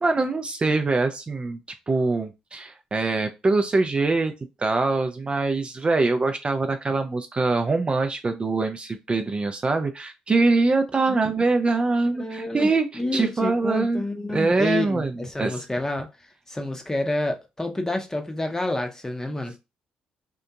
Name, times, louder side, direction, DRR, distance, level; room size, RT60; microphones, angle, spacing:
voice 1, 0.0-1.6 1.9-4.3 4.6-14.0 14.3-15.6, right 3 dB, 30° right, 0.4 m, -23 dB
voice 2, 12.2-12.7 12.9-16.1 16.5-19.5, left 2 dB, 15° left, 0.7 m, -28 dB
2.8 x 2.5 x 2.3 m
hypercardioid pair, 45°, 3 cm